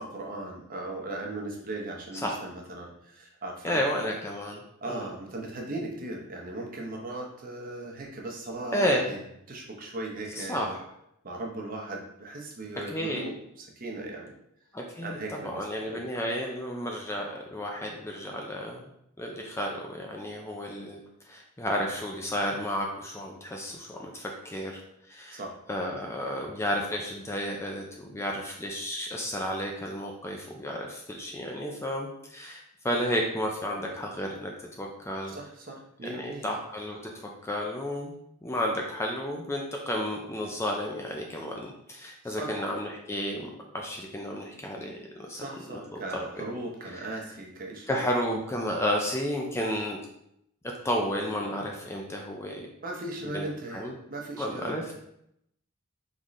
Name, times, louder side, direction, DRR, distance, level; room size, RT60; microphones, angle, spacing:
voice 1, 0.0-3.8 4.8-9.2 9.5-10.8 11.2-14.3 15.0-16.1 25.3-25.5 35.3-36.5 42.2-42.5 45.3-48.0 52.8-54.9, right 2 dB, 40° right, 0 dB, 0.8 m, -38 dB
voice 2, 3.6-4.6 4.9-5.1 8.7-9.1 10.4-10.8 12.9-13.3 14.7-18.9 19.2-21.0 21.3-24.8 25.1-25.4 25.7-34.5 34.8-35.4 36.1-37.0 37.4-38.1 38.4-45.5 46.4-46.5 46.9-47.1 47.9-50.0 50.8-52.7 53.2-53.5 53.7-53.9 54.4-54.9, equal, 15° left, 0 dB, 0.5 m, -32 dB
4.0 x 3.6 x 3.1 m, 0.76 s
head